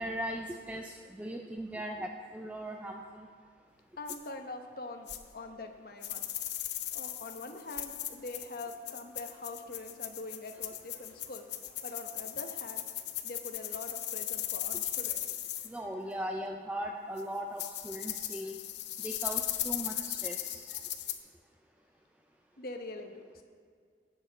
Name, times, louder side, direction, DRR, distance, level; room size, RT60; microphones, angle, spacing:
voice 1, 0.0-3.3 15.7-18.6 19.0-20.7, equal, 10° right, 2 dB, 0.4 m, -39 dB
voice 2, 4.0-5.1 5.3-6.3 6.9-11.5 11.8-12.9 13.2-15.4 22.6-23.4, left 2 dB, 55° left, 5 dB, 1.0 m, -44 dB
sound 1, 4.1-4.2 5.1-5.2 6.0-15.7 17.2-17.3 17.6-21.2, left 12 dB, 75° left, 0.7 m, -37 dB
17.5 x 7.3 x 4.1 m, 2.1 s
head